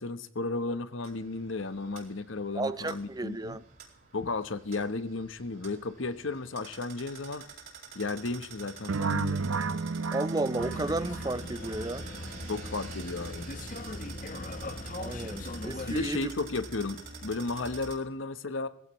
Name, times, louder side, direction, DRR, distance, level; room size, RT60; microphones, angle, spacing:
voice 1, 0.0-3.6 4.1-7.4 7.9-9.6 12.5-13.5 15.4-15.5 15.9-18.7, left 3 dB, 70° left, 1.0 m, -34 dB
sound 1, 1.0-18.0, right 4 dB, 50° right, 4.7 m, -48 dB
voice 2, 2.5-3.6 10.1-12.1 15.0-16.3, right 2 dB, 20° right, 0.6 m, -33 dB
sound 2, 8.9-11.8, right 4 dB, 85° right, 0.6 m, -32 dB
sound 3, 10.6-16.1, left 2 dB, 40° left, 1.1 m, -39 dB
21.0 x 15.5 x 3.1 m
head